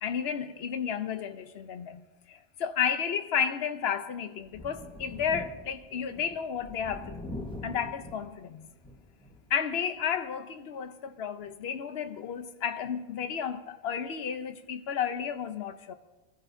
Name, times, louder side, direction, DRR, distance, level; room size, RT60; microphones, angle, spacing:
voice 1, 0.0-8.7 9.5-15.9, left 7 dB, 70° left, 1.0 m, -32 dB
Thunder, 4.4-9.5 10.0-10.1 11.4-11.5, left 1 dB, 5° left, 1.3 m, -44 dB
22.0 x 13.5 x 2.7 m
omnidirectional pair, 1.1 m